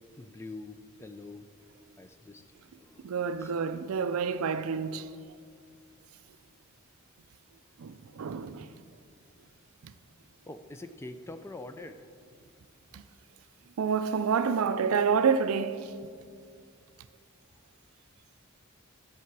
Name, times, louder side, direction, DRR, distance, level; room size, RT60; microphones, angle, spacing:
voice 1, 0.2-1.5 2.0-2.4 2.8-3.5 4.2-4.4 7.8-8.5 10.5-12.0, left 2 dB, 10° left, 0.3 m, -45 dB
voice 2, 3.0-5.1 7.8-8.7 12.9-13.0 13.8-15.9, right 6 dB, 75° right, 0.4 m, -28 dB
11.0 x 6.8 x 4.6 m
head